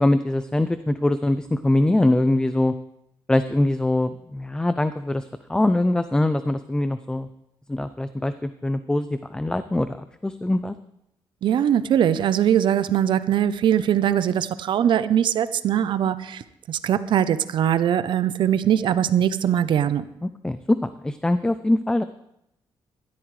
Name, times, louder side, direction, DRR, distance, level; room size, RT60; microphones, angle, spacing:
voice 1, 0.0-2.7 3.3-7.3 7.7-10.7 20.2-22.0, left 1 dB, 10° left, 12 dB, 0.4 m, -23 dB
voice 2, 11.4-20.0, right 10 dB, 65° right, 14 dB, 0.6 m, -21 dB
16.0 x 12.5 x 3.2 m, 0.79 s
cardioid pair, 135°, 9 cm